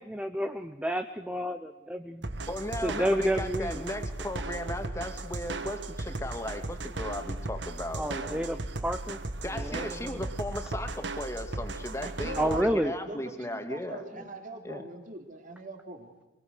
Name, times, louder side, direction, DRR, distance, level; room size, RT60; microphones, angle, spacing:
voice 1, 0.0-2.2 2.8-3.8 8.0-9.2 9.5-10.2 12.4-12.9, equal, 5° right, 7 dB, 0.9 m, -30 dB
sound 1, 2.2-12.6, right 2 dB, 65° right, 1.6 m, -36 dB
voice 2, 2.5-8.5 9.4-14.3 14.6-14.9, left 1 dB, 15° left, 6 dB, 2.3 m, -36 dB
voice 3, 12.0-16.1, right 2 dB, 45° right, 4 dB, 3.6 m, -41 dB
24.0 x 23.5 x 6.6 m, 1.1 s
head